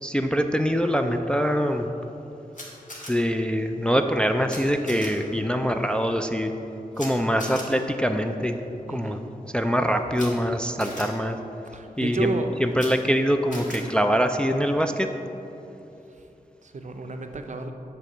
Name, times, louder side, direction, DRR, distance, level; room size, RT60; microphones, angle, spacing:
voice 1, 0.0-1.9 3.1-6.5 7.0-8.6 8.9-9.2 9.5-11.4 12.0-12.3 12.6-15.1, equal, 5° left, 5 dB, 0.3 m, -24 dB
Camera, 2.5-3.1 4.5-4.6 4.9-5.1 6.9-7.1 7.4-7.6 10.1-10.3 10.8-11.0 12.7-12.9 13.5-13.8, left 1 dB, 55° left, 1.6 m, -38 dB
voice 2, 8.9-9.2 11.7-12.5 16.6-17.7, right 3 dB, 50° right, 5 dB, 0.5 m, -31 dB
7.7 x 3.4 x 6.4 m, 2.9 s
wide cardioid pair, 80°, 15 cm